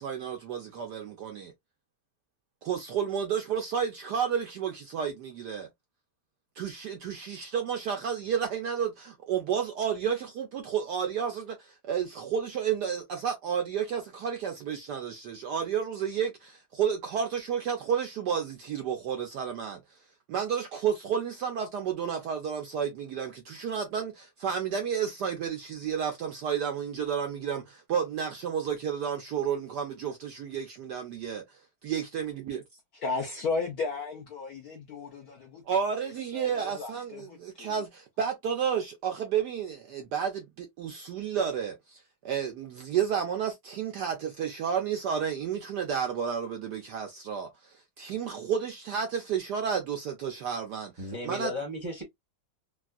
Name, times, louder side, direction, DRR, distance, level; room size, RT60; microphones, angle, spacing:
voice 1, 0.0-1.5 2.6-5.7 6.6-20.0 20.3-32.6 35.7-50.9 51.2-51.5, right 7 dB, 70° right, 1.0 m, -31 dB
voice 2, 33.0-35.6 36.3-37.7, left 4 dB, 65° left, 0.9 m, -34 dB
voice 3, 51.0-52.0, left 2 dB, 20° right, 0.8 m, -35 dB
3.6 x 2.4 x 2.3 m
omnidirectional pair, 2.3 m